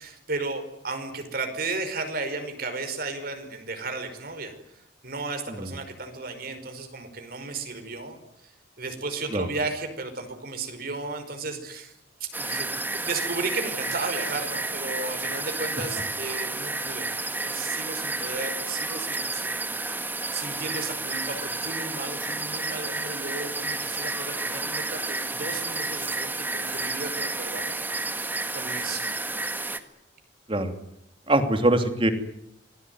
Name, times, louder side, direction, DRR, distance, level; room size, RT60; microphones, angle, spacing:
voice 1, 0.0-4.5 5.0-8.2 8.8-11.9 12.2-12.7 13.0-17.1 17.4-20.0 20.3-27.8 28.5-29.0, right 3 dB, 55° right, 7 dB, 5.3 m, -34 dB
sound 1, 12.3-29.8, right 2 dB, 10° right, 1.8 m, -31 dB
voice 2, 31.3-32.1, right 1 dB, 30° right, 7 dB, 3.0 m, -23 dB
27.0 x 20.0 x 9.6 m, 0.78 s
head